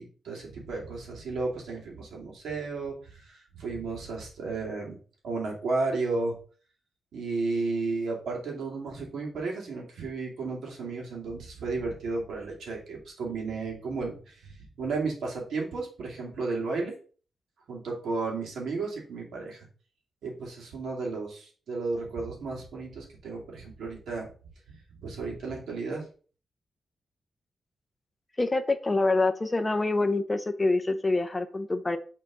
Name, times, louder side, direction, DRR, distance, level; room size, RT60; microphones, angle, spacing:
voice 1, 0.0-5.0 5.2-6.4 7.1-16.9 17.7-19.7 20.2-24.3 24.7-24.8 25.0-26.0, right 3 dB, 80° right, -2 dB, 2.4 m, -33 dB
voice 2, 28.4-32.0, left 2 dB, 15° left, 8 dB, 0.6 m, -26 dB
6.6 x 3.9 x 4.7 m, 0.40 s
wide cardioid pair, 165°, 0 cm